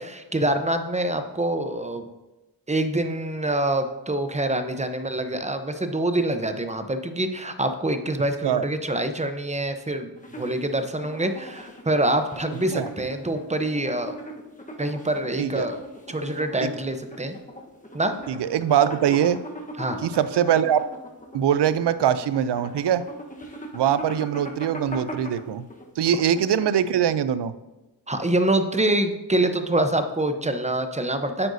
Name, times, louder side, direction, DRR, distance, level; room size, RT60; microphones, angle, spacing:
voice 1, 0.0-2.1 2.7-10.1 10.4-14.2 14.8-15.8 16.1-17.4 17.9-18.1 19.8-20.0 28.1-31.5, right 1 dB, 15° right, 8 dB, 0.8 m, -25 dB
sound 1, 10.2-27.0, equal, 15° left, 1.2 m, -39 dB
voice 2, 18.3-19.4 20.0-20.8 21.3-23.0 23.7-25.6 26.0-27.5, right 9 dB, 65° right, 14 dB, 0.6 m, -22 dB
9.8 x 7.9 x 2.7 m, 1.1 s
cardioid pair, 70°, 45 cm